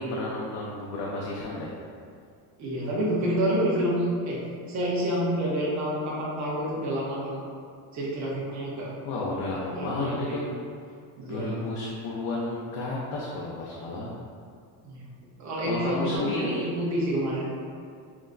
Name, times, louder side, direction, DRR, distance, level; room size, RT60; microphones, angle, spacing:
voice 1, 0.0-1.7 9.0-10.4 11.2-14.1 15.6-16.6, left 2 dB, 80° left, -4 dB, 0.7 m, -32 dB
voice 2, 2.6-4.4 4.7-7.4 7.9-8.9 9.7-10.4 11.2-11.7 14.8-15.0 15.4-17.5, equal, 40° right, -5 dB, 1.0 m, -28 dB
5.9 x 2.2 x 2.5 m, 2.3 s
cardioid pair, 135°, 44 cm